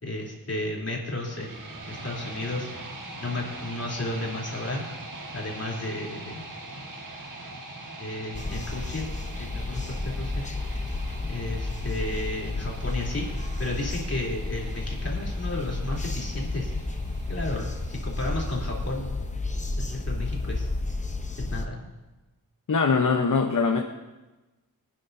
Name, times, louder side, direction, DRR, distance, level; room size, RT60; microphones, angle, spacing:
voice 1, 0.0-2.7 3.2-4.8 5.3-6.4 8.0-9.1 9.4-10.4 11.3-13.2 13.6-16.7 17.3-19.1 19.8-20.7 21.4-21.8, left 2 dB, 45° left, -4 dB, 3.4 m, -33 dB
sound 1, 1.1-19.1, right 2 dB, 60° right, 1.9 m, -42 dB
sound 2, 8.3-21.7, left 2 dB, 20° left, 0.8 m, -31 dB
voice 2, 22.7-23.8, left 4 dB, 60° left, 3 dB, 0.9 m, -22 dB
24.0 x 9.9 x 2.7 m, 1.1 s
wide cardioid pair, 120°, 36 cm